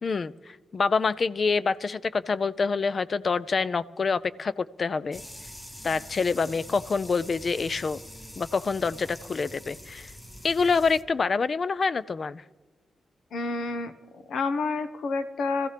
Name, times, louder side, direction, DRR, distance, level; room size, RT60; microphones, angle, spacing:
voice 1, 0.0-5.2 5.8-8.0 8.4-10.1 10.4-12.4, left 4 dB, 40° left, 18 dB, 0.4 m, -26 dB
sound 1, 5.1-11.0, left 1 dB, 10° left, 0.7 m, -44 dB
voice 2, 13.3-13.9 14.3-15.7, left 3 dB, 80° left, 10 dB, 1.0 m, -29 dB
25.5 x 15.0 x 3.3 m, 1.3 s
wide cardioid pair, 150°, 0 cm